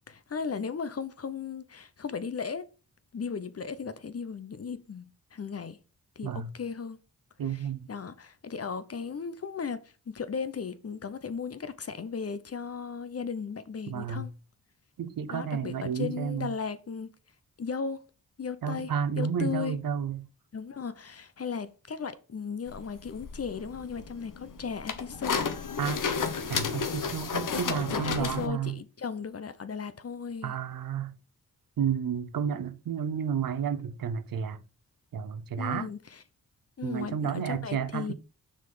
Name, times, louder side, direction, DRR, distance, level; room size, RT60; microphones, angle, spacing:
voice 1, 0.1-2.6 3.1-5.8 6.2-7.0 7.5-14.3 15.3-17.1 17.6-18.0 18.4-18.9 19.2-19.8 20.5-25.5 27.5-30.5 35.6-36.2 36.8-38.1, left 6 dB, 40° left, 0.8 m, -36 dB
voice 2, 7.4-7.9 13.9-14.3 15.0-16.5 18.6-20.3 25.8-26.0 26.5-28.8 30.4-31.1 31.8-34.6 35.1-35.9 36.8-38.1, right 7 dB, 70° right, 0.7 m, -31 dB
sound 1, 22.7-28.5, left 5 dB, 60° left, 1.1 m, -32 dB
6.3 x 3.8 x 5.4 m
cardioid pair, 50°, 36 cm